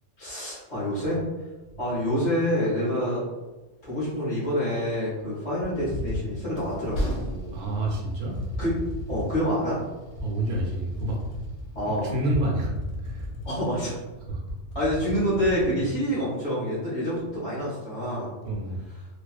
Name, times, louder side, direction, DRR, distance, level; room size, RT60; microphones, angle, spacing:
voice 1, 0.2-1.2 1.8-3.2 3.8-7.5 8.6-8.7 9.1-9.8 11.7-12.1 13.4-14.0 14.7-18.3, equal, 30° left, -10 dB, 1.0 m, -27 dB
sound 1, 5.6-7.1 7.8-8.0 8.3-9.5 10.2-11.8 12.3-13.8 14.1-14.2 14.5-15.7, left 1 dB, 60° left, 0.8 m, -35 dB
Train, 5.7-14.3, equal, 80° left, 1.0 m, -39 dB
voice 2, 7.5-8.4 10.2-11.2 11.8-12.7 13.0-13.3 14.3-14.4 15.8-15.9 17.1-17.3 18.4-18.8, right 2 dB, 45° right, -3 dB, 0.6 m, -29 dB
2.7 x 2.2 x 2.4 m, 1.1 s
omnidirectional pair, 1.3 m